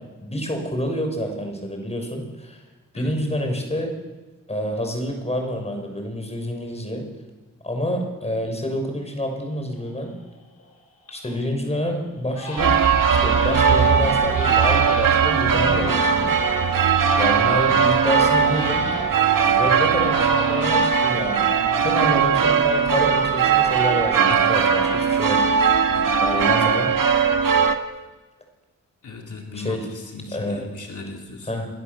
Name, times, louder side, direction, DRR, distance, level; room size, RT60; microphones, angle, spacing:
voice 1, 0.2-2.6 2.9-3.9 4.5-7.1 7.6-10.2 11.1-12.7 13.1-16.4 16.9-18.9 19.4-21.4 21.8-25.8 26.2-26.9 29.5-29.8 30.3-30.6 31.5-31.7, left 1 dB, 20° left, 4 dB, 6.2 m, -28 dB
voice 2, 2.9-3.4 24.3-24.8 25.9-26.7 29.0-31.5, left 3 dB, 65° left, 1 dB, 3.3 m, -37 dB
Crying sobbing, 9.2-9.3 9.7-10.2 10.6-11.4 11.7-11.9 12.3-19.3 19.7-23.1 23.3-24.8 25.1-25.7, left 2 dB, 50° left, 6.8 m, -35 dB
sound 1, 12.6-27.8, right 6 dB, 90° right, 1.9 m, -19 dB
sound 2, 15.3-20.6, right 5 dB, 50° right, 4.2 m, -43 dB
28.0 x 25.0 x 7.1 m, 1.2 s
wide cardioid pair, 160°, 32 cm